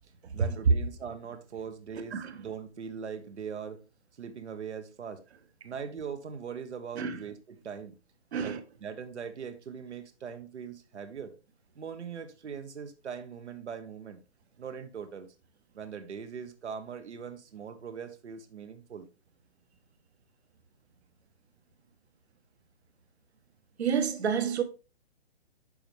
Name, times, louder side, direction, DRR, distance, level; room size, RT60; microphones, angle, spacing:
voice 1, 0.3-3.8 4.2-5.2 5.6-7.9 8.4-11.3 11.7-14.2 14.6-15.3 15.7-19.1, right 7 dB, 85° right, 1.3 m, -41 dB
voice 2, 23.8-24.6, right 7 dB, 70° right, 1.3 m, -29 dB
9.9 x 5.4 x 3.3 m
hypercardioid pair, 155°, 34 cm